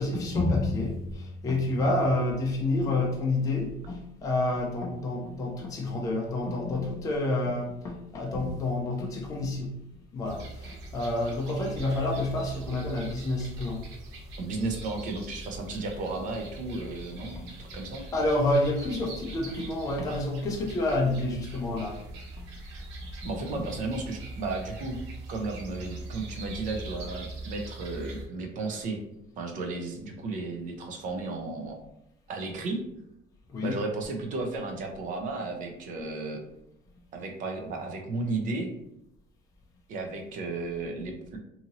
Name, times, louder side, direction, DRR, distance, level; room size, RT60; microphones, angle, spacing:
voice 1, 0.0-9.8 10.1-13.8 17.2-17.5 18.1-22.0 23.6-23.7 33.5-33.8, left 2 dB, 15° left, -1 dB, 0.4 m, -29 dB
sound 1, 10.3-28.3, right 2 dB, 75° right, 0.7 m, -42 dB
voice 2, 14.4-18.1 23.2-25.0 25.3-29.0 29.4-31.8 32.3-32.8 33.6-36.4 37.1-38.7 39.9-41.4, right 3 dB, 40° right, 3 dB, 0.5 m, -34 dB
2.7 x 2.6 x 2.8 m, 0.83 s
cardioid pair, 175°, 20 cm